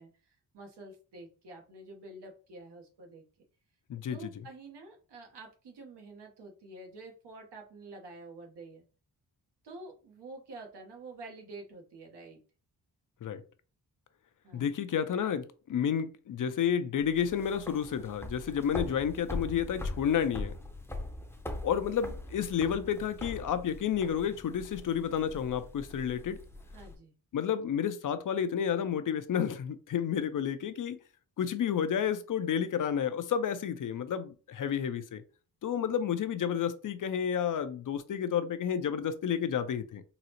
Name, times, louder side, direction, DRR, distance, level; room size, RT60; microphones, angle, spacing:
voice 1, 0.0-3.2 4.1-8.8 9.6-12.4 14.4-14.7 26.7-27.1, right 2 dB, 80° right, 1.1 m, -48 dB
voice 2, 3.9-4.3 13.2-13.4 14.5-20.5 21.6-26.4 27.3-31.0 31.4-35.2 35.6-40.0, left 8 dB, 50° left, 0.5 m, -31 dB
sound 1, 17.0-26.9, left 1 dB, 5° left, 0.6 m, -42 dB
3.9 x 2.0 x 2.8 m
cardioid pair, 70°, 40 cm